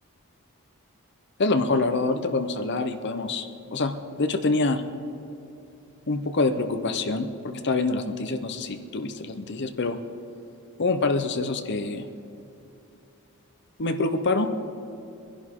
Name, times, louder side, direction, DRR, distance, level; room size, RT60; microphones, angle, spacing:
voice 1, 1.4-3.9 4.2-4.8 6.1-10.0 10.8-12.1 13.8-14.5, left 3 dB, 55° left, 8 dB, 0.8 m, -26 dB
22.5 x 11.0 x 3.7 m, 2.6 s
head